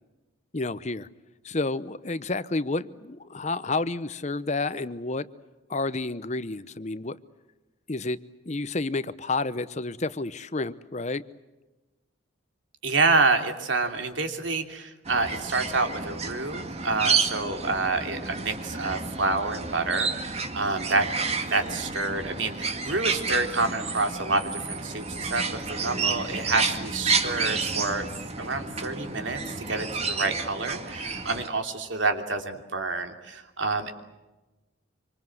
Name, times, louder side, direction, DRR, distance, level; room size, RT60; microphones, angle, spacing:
voice 1, 0.5-1.1 1.4-5.3 5.7-7.2 7.9-8.2 8.5-11.2, left 3 dB, 35° left, 15 dB, 0.9 m, -30 dB
voice 2, 12.8-21.1 21.4-25.4 25.7-28.1 28.4-29.4 29.7-33.9, right 3 dB, 75° right, 6 dB, 3.0 m, -28 dB
sound 1, 15.0-31.5, right 4 dB, 35° right, 2.2 m, -30 dB
26.5 x 25.5 x 7.9 m, 1.1 s
head